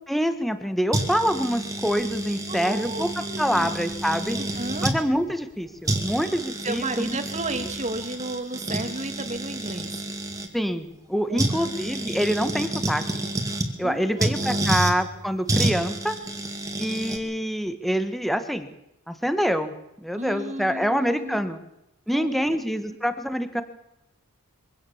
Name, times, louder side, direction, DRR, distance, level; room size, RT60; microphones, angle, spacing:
voice 1, 0.1-3.1 3.4-4.4 4.8-7.2 10.5-13.2 13.8-16.1 16.8-18.7 19.1-19.7 20.0-21.6 22.1-23.6, equal, ahead, 9 dB, 1.5 m, -26 dB
sound 1, 0.9-5.0 5.5-5.6 5.9-10.5 11.4-13.7 14.2-14.9 15.5-17.2, right 1 dB, 15° right, 2.5 m, -29 dB
voice 2, 2.5-3.7 4.4-4.9 6.6-10.1 11.3-11.7 13.8-14.3 14.7-14.8 20.1-21.6 22.1-22.6, right 2 dB, 30° right, 7 dB, 2.4 m, -33 dB
24.0 x 17.0 x 7.3 m, 0.87 s
head